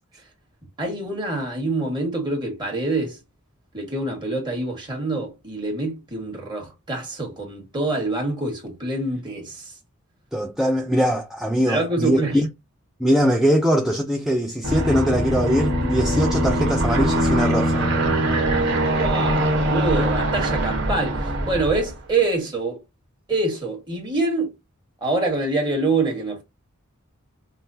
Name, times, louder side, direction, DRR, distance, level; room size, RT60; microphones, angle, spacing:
voice 1, 0.8-3.2 3.7-9.7 11.7-12.4 19.0-22.8 23.3-24.5 25.0-26.4, right 2 dB, 20° right, 1.5 m, -25 dB
voice 2, 10.3-12.5 13.0-17.9, equal, ahead, 0.4 m, -21 dB
Aircraft, 14.6-22.0, right 1 dB, 60° right, 1.3 m, -22 dB
5.4 x 2.1 x 2.6 m
head